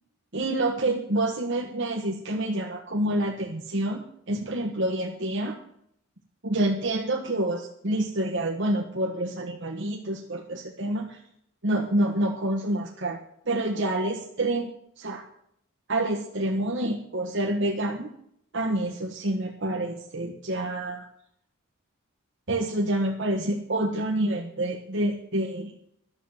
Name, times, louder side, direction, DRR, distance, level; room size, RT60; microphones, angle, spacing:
voice 1, 0.3-5.5 6.4-11.2 11.6-13.2 13.5-14.7 15.0-15.2 15.9-18.1 18.5-21.0 22.5-25.7, right 1 dB, 55° right, 1 dB, 1.4 m, -27 dB
12.5 x 7.3 x 9.1 m, 0.73 s
head